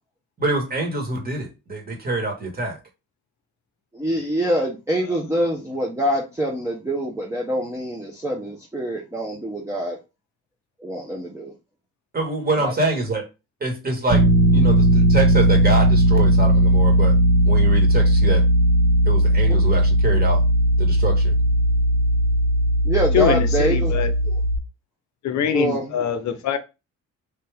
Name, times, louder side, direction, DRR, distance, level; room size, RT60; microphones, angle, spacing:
voice 1, 0.4-2.8 12.1-13.2 13.6-14.2 14.5-17.2 17.4-18.5 19.0-20.4 20.8-21.3, right 2 dB, 30° right, 1.5 m, -25 dB
voice 2, 3.9-10.0 10.8-11.5 12.6-12.7 19.5-19.6 22.8-24.0 24.3-24.4 25.5-26.0, right 1 dB, 10° right, 0.7 m, -25 dB
sound 1, 14.1-24.6, right 1 dB, 90° right, 1.7 m, -17 dB
voice 3, 23.1-24.1 25.2-26.6, left 8 dB, 65° left, 0.7 m, -23 dB
3.5 x 2.7 x 3.4 m
cardioid pair, 90°, 30 cm